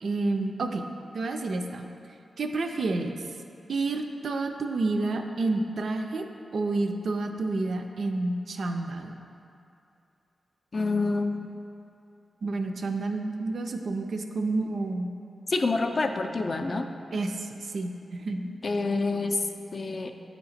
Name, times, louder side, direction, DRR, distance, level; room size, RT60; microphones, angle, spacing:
voice 1, 0.0-0.9 1.1-1.9 2.4-3.2 3.7-6.3 6.5-9.2 12.4-15.1 17.1-18.5, right 3 dB, 65° right, 5 dB, 0.4 m, -29 dB
voice 2, 10.7-11.6 15.5-16.9 18.6-20.1, left 3 dB, 45° left, 5 dB, 0.3 m, -27 dB
8.4 x 2.9 x 4.2 m, 2.7 s
wide cardioid pair, 105°, 0 cm